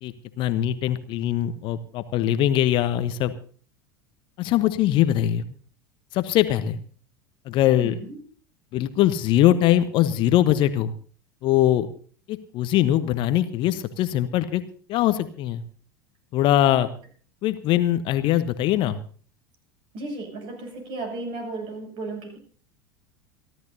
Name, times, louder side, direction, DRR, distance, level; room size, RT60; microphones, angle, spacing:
voice 1, 0.0-3.3 4.4-5.5 6.1-6.8 7.5-7.9 8.7-10.9 11.4-11.9 12.3-14.6 14.9-15.6 16.3-16.9 17.4-19.0, left 12 dB, 45° left, 12 dB, 1.0 m, -22 dB
voice 2, 7.8-8.2 19.9-22.4, right 2 dB, 45° right, 3 dB, 7.1 m, -34 dB
28.0 x 12.5 x 2.8 m, 0.43 s
figure-of-eight pair, 75°, 12 cm